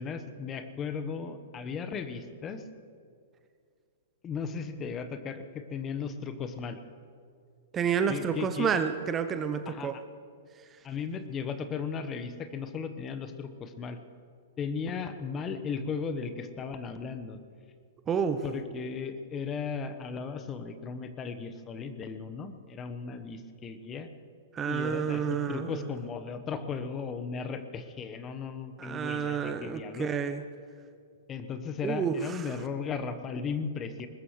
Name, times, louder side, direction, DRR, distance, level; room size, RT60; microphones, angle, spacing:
voice 1, 0.0-2.6 4.2-6.8 8.1-8.8 9.7-10.0 10.8-14.0 14.6-17.4 18.4-24.1 24.7-30.1 31.3-34.1, left 5 dB, 25° left, 9 dB, 1.2 m, -36 dB
voice 2, 7.7-10.0 18.1-18.4 24.5-25.8 28.8-30.4 31.8-32.4, right 7 dB, 25° right, 9 dB, 0.8 m, -29 dB
21.0 x 20.0 x 3.2 m, 2.2 s
hypercardioid pair, 110°, 0 cm